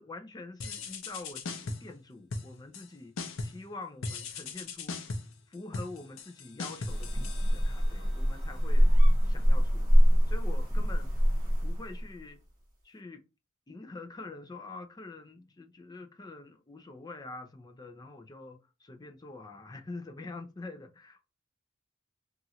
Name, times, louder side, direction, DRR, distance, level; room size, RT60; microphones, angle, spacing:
voice 1, 0.0-3.1 3.4-5.0 5.5-8.9 9.2-9.9 10.3-12.4 12.8-13.2 13.7-21.3, left 3 dB, 20° left, 0.4 m, -45 dB
sound 1, 0.6-2.0 2.3-2.9 3.2-3.7 4.0-8.0, left 3 dB, 70° left, 0.6 m, -39 dB
sound 2, 6.9-12.2, equal, 20° right, 1.6 m, -24 dB
3.0 x 2.4 x 2.7 m
head